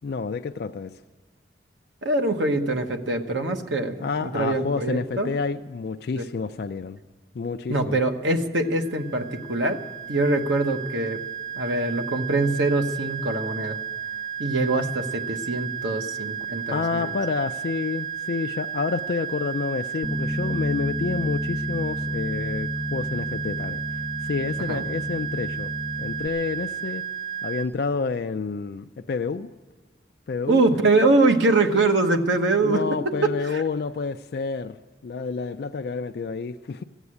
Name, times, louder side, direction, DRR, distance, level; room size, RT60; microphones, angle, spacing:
voice 1, 0.0-0.9 4.0-7.0 7.3-8.0 16.7-25.7 26.0-27.0 27.4-29.5 30.3-30.6 32.6-34.8 35.0-36.8, left 4 dB, 55° left, 7 dB, 0.3 m, -29 dB
voice 2, 2.0-4.0 4.2-5.3 6.2-6.3 7.7-9.8 10.1-11.2 11.6-13.8 14.4-17.1 24.7-24.8 30.5-32.8 33.2-33.6, right 2 dB, 85° right, 5 dB, 1.1 m, -23 dB
sound 1, 8.6-27.7, right 8 dB, 50° right, 0.8 m, -33 dB
Bass guitar, 20.0-26.3, left 1 dB, 5° right, 0.5 m, -31 dB
15.0 x 8.2 x 9.7 m, 1.3 s
head